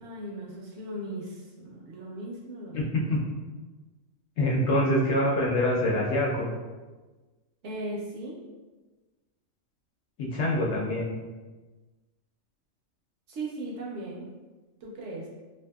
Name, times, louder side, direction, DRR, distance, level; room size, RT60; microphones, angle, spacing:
voice 1, 0.0-2.8 7.6-8.4 13.3-14.3 14.8-15.3, right 1 dB, 70° right, -3 dB, 0.8 m, -37 dB
voice 2, 4.4-6.5 10.2-11.1, left 1 dB, 70° left, -3 dB, 0.8 m, -25 dB
2.6 x 2.4 x 2.3 m, 1.2 s
omnidirectional pair, 1.3 m